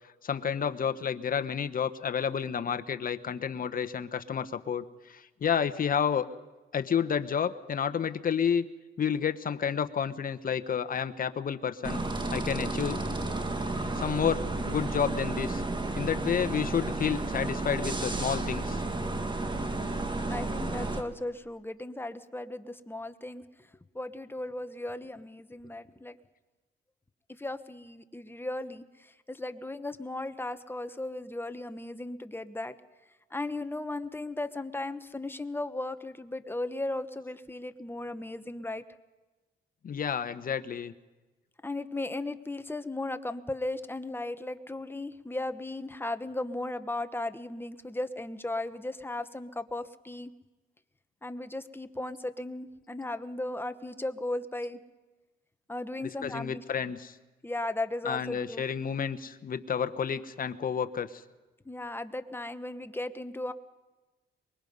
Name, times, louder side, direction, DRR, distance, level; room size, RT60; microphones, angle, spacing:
voice 1, 0.2-6.3 6.7-8.6 9.0-12.0 12.3-13.0 14.0-15.6 16.0-18.8 39.8-40.9 56.2-57.1 58.0-61.2, left 7 dB, 45° left, 9 dB, 1.2 m, -30 dB
sound 1, 11.8-21.0, right 2 dB, 25° right, 1.8 m, -32 dB
voice 2, 20.3-23.7 23.9-26.2 27.3-32.8 33.3-38.8 41.6-50.3 51.2-54.8 55.7-56.6 57.4-58.6 61.6-63.5, left 2 dB, 10° left, 10 dB, 1.1 m, -36 dB
24.0 x 22.0 x 5.5 m, 1.2 s
cardioid pair, 90°, 20 cm